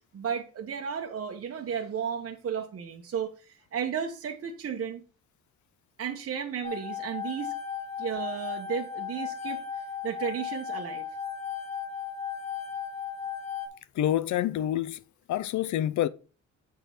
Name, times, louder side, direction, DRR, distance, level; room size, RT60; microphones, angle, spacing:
voice 1, 0.1-5.0 6.0-7.6 8.0-11.0, right 7 dB, 50° right, 1.2 m, -34 dB
sound 1, 6.6-13.7, left 7 dB, 20° left, 3.4 m, -36 dB
voice 2, 13.9-15.0 15.3-16.1, left 12 dB, 75° left, 0.7 m, -27 dB
8.1 x 3.9 x 6.0 m
cardioid pair, 90°, 30 cm